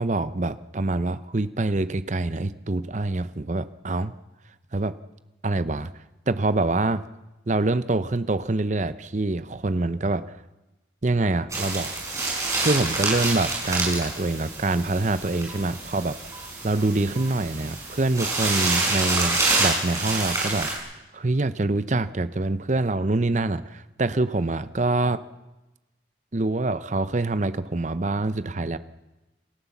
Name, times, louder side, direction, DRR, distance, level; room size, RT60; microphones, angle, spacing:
voice 1, 0.0-4.1 4.7-4.9 5.4-5.9 6.3-7.0 7.5-10.2 11.0-11.9 12.6-16.2 16.6-20.9 21.1-25.2 26.3-28.8, right 2 dB, 40° right, 14 dB, 0.7 m, -25 dB
sound 1, 11.5-20.8, right 3 dB, 15° right, 5.7 m, -27 dB
27.0 x 14.0 x 7.2 m, 1.1 s
head